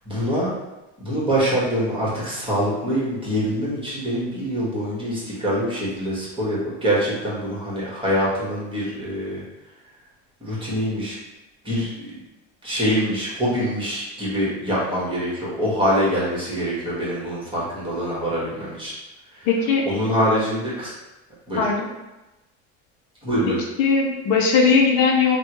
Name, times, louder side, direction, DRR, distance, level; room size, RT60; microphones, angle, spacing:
voice 1, 0.0-0.5 1.0-9.4 10.4-11.1 11.6-12.2 12.6-18.9 19.3-19.5 19.8-20.9 21.5-21.6 23.2-23.6, equal, 15° right, -7 dB, 1.5 m, -24 dB
voice 2, 19.4-19.8 21.6-21.9 23.8-25.4, left 5 dB, 70° left, -1 dB, 0.7 m, -18 dB
3.4 x 2.3 x 3.0 m, 1.0 s
supercardioid pair, 105°, 37 cm